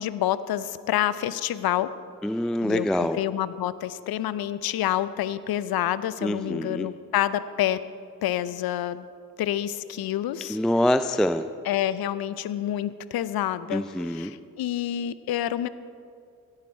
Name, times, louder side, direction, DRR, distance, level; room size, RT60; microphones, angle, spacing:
voice 1, 0.0-1.9 2.6-7.8 8.2-9.1 9.4-10.6 11.6-15.7, left 12 dB, 60° left, 16 dB, 0.6 m, -28 dB
voice 2, 2.2-3.2 6.2-6.9 10.5-11.5 13.7-14.3, left 1 dB, ahead, 11 dB, 0.3 m, -25 dB
17.0 x 8.9 x 4.3 m, 2.4 s
hypercardioid pair, 50°, 42 cm